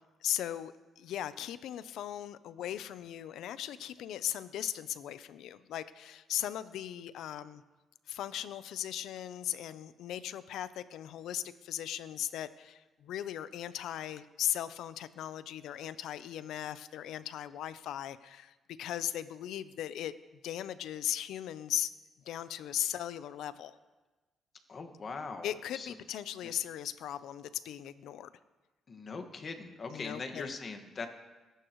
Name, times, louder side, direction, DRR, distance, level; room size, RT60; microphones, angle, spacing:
voice 1, 0.2-7.6 8.1-20.1 20.4-21.9 22.3-23.8 25.4-28.3 29.9-30.5, left 11 dB, 80° left, 14 dB, 0.6 m, -38 dB
voice 2, 24.7-26.0 26.4-26.5 28.9-31.1, left 4 dB, 45° left, 5 dB, 1.8 m, -41 dB
22.5 x 11.5 x 3.1 m, 1.2 s
cardioid pair, 90°, 0 cm